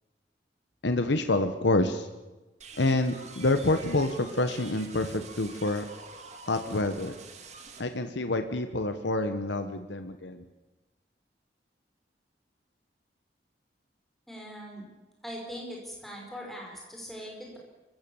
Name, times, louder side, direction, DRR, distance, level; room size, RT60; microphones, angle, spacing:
voice 1, 0.8-2.1 2.8-5.8 6.5-7.1 7.8-10.4, left 2 dB, 80° left, 8 dB, 1.2 m, -27 dB
sound 1, 2.6-7.8, right 4 dB, 40° right, 2.3 m, -46 dB
voice 2, 14.3-14.8 15.2-17.6, equal, ahead, -2 dB, 5.1 m, -41 dB
24.5 x 16.0 x 7.1 m, 1.1 s
head